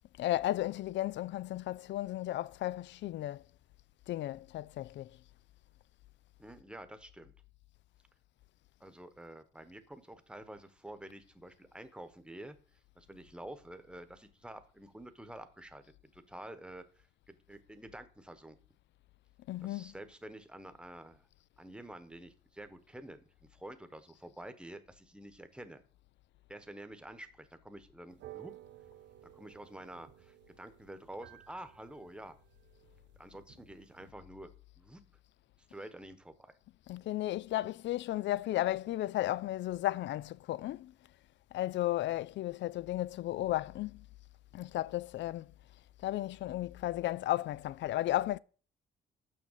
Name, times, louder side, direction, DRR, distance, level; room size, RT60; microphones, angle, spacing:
voice 1, 0.2-3.4 4.1-5.1 19.5-19.9 36.9-40.9 41.5-44.0 44.5-45.5 46.0-48.4, left 15 dB, 65° left, 0.4 m, -34 dB
voice 2, 6.4-7.3 8.8-18.6 19.6-21.3 21.6-25.8 26.5-28.5 29.2-32.4 33.2-34.5 34.8-35.0 35.7-36.6, right 1 dB, 5° right, 1.1 m, -49 dB
sound 1, 28.1-34.1, right 14 dB, 65° right, 0.5 m, -55 dB
6.3 x 5.8 x 7.3 m
cardioid pair, 90°, 20 cm